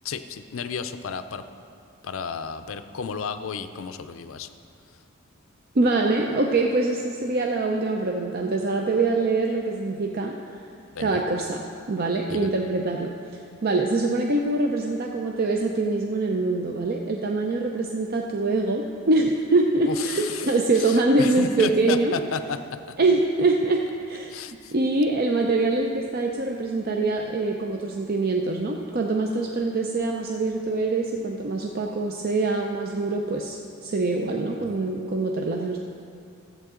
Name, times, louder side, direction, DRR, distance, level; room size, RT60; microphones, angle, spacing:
voice 1, 0.0-1.4 2.0-4.5 10.9-11.2 12.3-12.5 19.9-22.6 24.3-24.7 34.6-34.9, left 5 dB, 65° left, 10 dB, 0.5 m, -32 dB
voice 2, 5.7-10.3 11.0-11.6 11.9-13.1 13.6-22.1 23.0-35.8, right 2 dB, 45° right, 1 dB, 0.5 m, -24 dB
14.0 x 7.9 x 3.7 m, 2.5 s
head